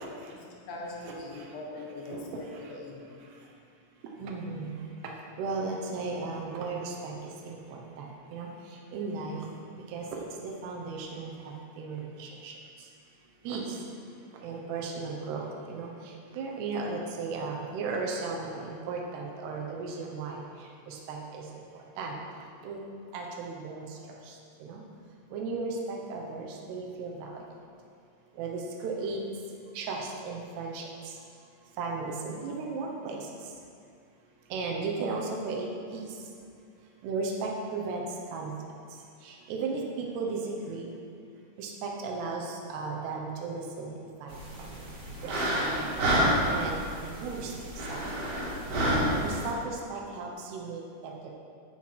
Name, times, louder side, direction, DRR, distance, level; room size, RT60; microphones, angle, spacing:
voice 1, 0.4-3.3, left 2 dB, 60° left, -2 dB, 1.9 m, -42 dB
voice 2, 4.2-4.8 5.4-7.2 7.5-8.0 8.3-8.5 8.9-9.4 9.9-12.5 13.4-13.8 14.4-15.9 16.3-20.3 20.9-21.5 22.0-22.1 22.6-22.8 23.1-23.8 24.6-24.8 25.3-27.4 28.4-29.2 29.8-30.8 31.8-33.2 34.5-36.0 37.0-38.0 38.3-38.5 39.3-40.9 41.6-44.4 45.2-45.4 45.7-45.9 46.5-46.8 47.2-47.5 47.9-48.3 49.1-51.3, right 4 dB, 85° right, 0 dB, 3.2 m, -35 dB
sound 1, 44.3-49.5, right 1 dB, 50° right, 2.5 m, -29 dB
14.0 x 5.8 x 4.7 m, 2.4 s
omnidirectional pair, 4.6 m